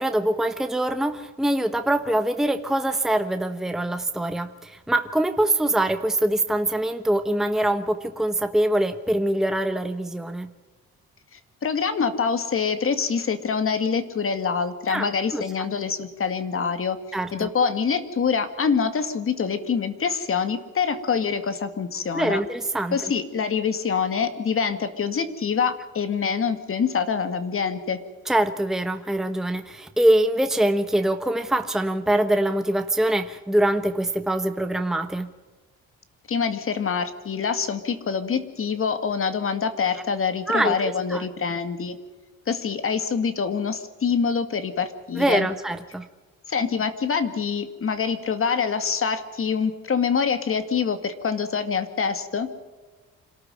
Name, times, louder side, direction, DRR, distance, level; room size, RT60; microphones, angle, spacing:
voice 1, 0.0-10.5 14.9-15.4 17.1-17.5 22.1-23.1 28.3-35.3 40.5-41.2 45.2-46.1, right 1 dB, ahead, 8 dB, 1.1 m, -24 dB
voice 2, 11.6-17.0 17.3-22.4 22.9-28.0 36.3-42.0 42.5-45.5 46.5-52.5, left 6 dB, 45° left, 10 dB, 2.2 m, -25 dB
26.5 x 13.5 x 9.2 m, 1.3 s
cardioid pair, 90°, 30 cm